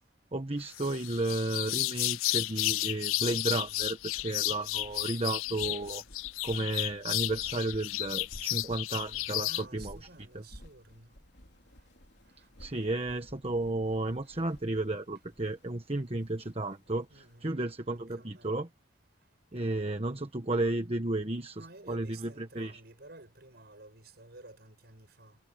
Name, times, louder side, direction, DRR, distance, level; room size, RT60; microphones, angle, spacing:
voice 1, 0.3-6.0 6.4-10.0 10.3-10.4 12.6-18.7 19.5-21.6 21.9-22.8, right 2 dB, 30° right, 1.3 m, -33 dB
sound 1, 0.7-9.6, left 19 dB, 80° left, 0.3 m, -33 dB
sound 2, 3.2-17.4, equal, 55° left, 4.1 m, -55 dB
voice 2, 9.5-11.1 12.4-12.5 14.3-14.4 17.1-17.6 17.9-18.6 21.6-25.4, right 2 dB, 50° right, 6.4 m, -52 dB
head